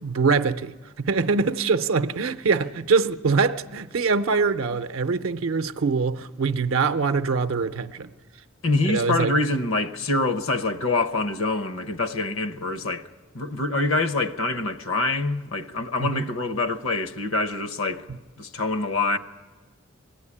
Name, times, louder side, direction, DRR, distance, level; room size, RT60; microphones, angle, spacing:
voice 1, 0.0-8.1 8.9-9.4 16.0-16.2, right 4 dB, 70° right, 0.6 m, -23 dB
voice 2, 8.6-13.1 13.3-19.2, left 2 dB, 65° left, 0.9 m, -25 dB
21.5 x 15.5 x 9.8 m
head